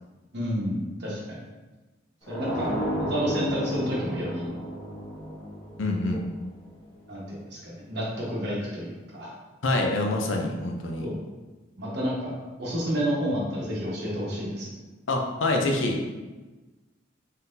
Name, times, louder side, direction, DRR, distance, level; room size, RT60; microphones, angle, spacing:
voice 1, 0.3-1.4 2.3-4.5 6.1-6.2 7.1-9.3 11.0-11.1 11.8-14.8, equal, 55° right, -5 dB, 1.3 m, -30 dB
sound 1, 2.3-7.0, right 1 dB, 25° left, 1.2 m, -33 dB
voice 2, 5.8-6.2 9.6-11.1 15.1-16.0, left 2 dB, 75° left, 2 dB, 0.6 m, -26 dB
4.1 x 3.9 x 2.7 m, 1.2 s
head